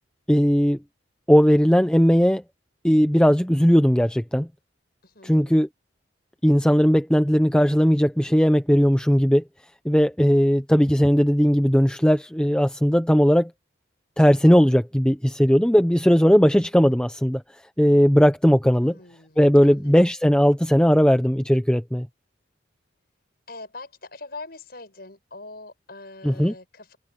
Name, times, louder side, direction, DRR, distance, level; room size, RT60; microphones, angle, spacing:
voice 1, 0.3-0.8 1.3-2.4 2.8-4.5 5.2-5.7 6.4-9.4 9.8-13.5 14.2-17.4 17.8-18.9 19.4-22.1 26.2-26.5, equal, 5° left, 0.9 m, -18 dB
voice 2, 5.0-5.6 18.8-19.9 23.5-27.0, left 3 dB, 55° left, 7.7 m, -42 dB
head